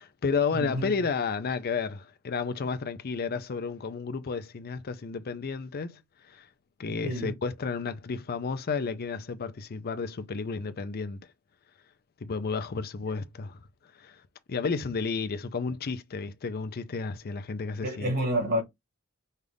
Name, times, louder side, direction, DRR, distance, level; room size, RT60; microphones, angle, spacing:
voice 1, 0.0-6.0 6.3-6.5 6.8-11.2 12.2-13.6 14.0-14.2 14.5-18.1, left 5 dB, 45° left, 0.5 m, -32 dB
voice 2, 0.5-0.9 7.0-7.3 17.8-18.6, equal, 50° right, 1.6 m, -29 dB
5.3 x 2.4 x 3.3 m
head